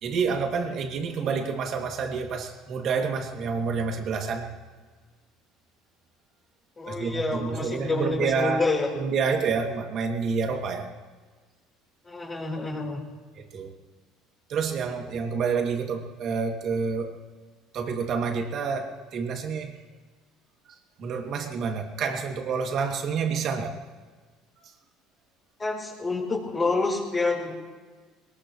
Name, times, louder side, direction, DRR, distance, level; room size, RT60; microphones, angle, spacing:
voice 1, 0.0-4.5 6.9-8.7 8.9-10.9 13.3-13.7 14.5-17.1 17.7-19.7 21.0-23.8 24.6-24.7, right 5 dB, 50° right, 3 dB, 2.6 m, -28 dB
voice 2, 6.8-8.9 12.0-13.0 25.6-27.5, left 3 dB, 25° left, -3 dB, 4.4 m, -28 dB
21.5 x 20.5 x 3.2 m, 1.4 s
supercardioid pair, 110°, 0 cm